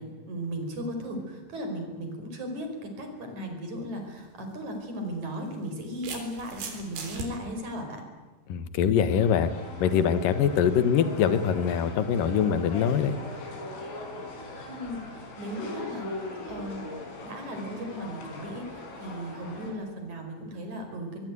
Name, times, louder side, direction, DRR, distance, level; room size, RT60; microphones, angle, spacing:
voice 1, 0.0-8.0 14.7-16.1 16.5-21.3, equal, 40° right, 4 dB, 6.0 m, -36 dB
sound 1, 4.1-4.3 5.3-7.3, right 5 dB, 55° right, 5.7 m, -38 dB
voice 2, 8.5-9.5 9.8-13.2, left 8 dB, 60° left, 12 dB, 2.4 m, -23 dB
sound 2, 9.1-19.7, left 2 dB, 90° left, 7.4 m, -40 dB
24.5 x 21.5 x 9.4 m, 1.2 s
omnidirectional pair, 5.6 m